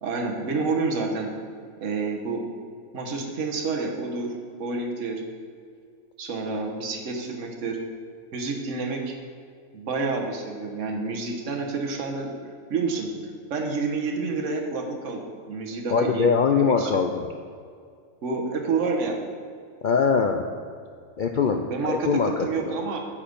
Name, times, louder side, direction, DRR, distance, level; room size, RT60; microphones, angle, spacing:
voice 1, 0.0-1.3 1.8-2.4 2.9-4.3 4.6-5.2 6.2-7.8 8.3-9.1 9.7-12.3 12.7-13.2 13.5-15.2 15.5-16.9 18.2-19.2 21.7-23.0, right 4 dB, 60° right, 1 dB, 1.5 m, -28 dB
voice 2, 15.9-17.3 19.8-20.4 21.2-22.8, left 5 dB, 75° left, 4 dB, 0.4 m, -22 dB
8.8 x 7.2 x 5.2 m, 2.2 s
omnidirectional pair, 1.5 m